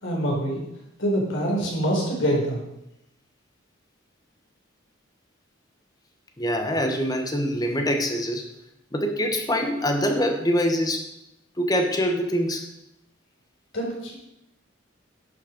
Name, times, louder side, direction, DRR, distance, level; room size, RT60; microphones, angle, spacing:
voice 1, 0.0-0.6 1.0-2.6 13.7-14.2, equal, 70° left, -2 dB, 4.1 m, -25 dB
voice 2, 6.4-8.5 8.9-11.0 11.6-12.6, equal, 20° left, 4 dB, 1.3 m, -24 dB
11.0 x 6.7 x 5.1 m, 0.85 s
head